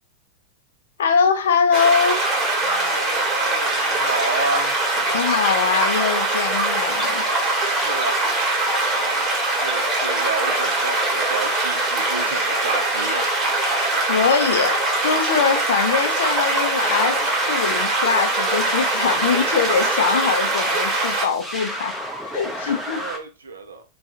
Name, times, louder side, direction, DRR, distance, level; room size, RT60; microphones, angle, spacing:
voice 1, 1.0-2.2 5.1-7.2 13.9-21.9 22.3-23.0, left 6 dB, 60° left, 0.4 m, -22 dB
sound 1, 1.7-21.3, right 2 dB, 20° right, 1.1 m, -22 dB
voice 2, 2.6-4.8 7.7-8.4 8.6-13.3 22.8-23.8, right 3 dB, 70° right, 0.4 m, -31 dB
sound 2, 16.8-23.2, equal, ahead, 0.5 m, -32 dB
2.3 x 2.3 x 2.8 m
figure-of-eight pair, 90°, 0 cm